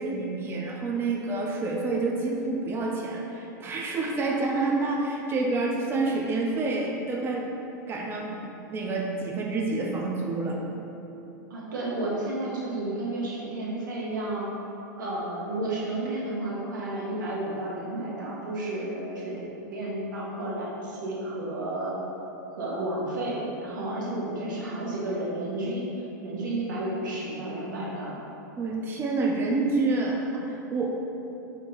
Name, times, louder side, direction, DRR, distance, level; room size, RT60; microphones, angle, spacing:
voice 1, 0.0-7.5 7.9-8.4 8.7-10.6 28.6-31.0, right 3 dB, 20° right, -1 dB, 0.5 m, -28 dB
voice 2, 11.5-14.5 15.0-19.4 19.7-22.0 22.5-25.8 26.2-28.2, right 1 dB, 80° right, -5 dB, 1.2 m, -32 dB
4.4 x 2.9 x 3.9 m, 2.9 s
hypercardioid pair, 105°, 10 cm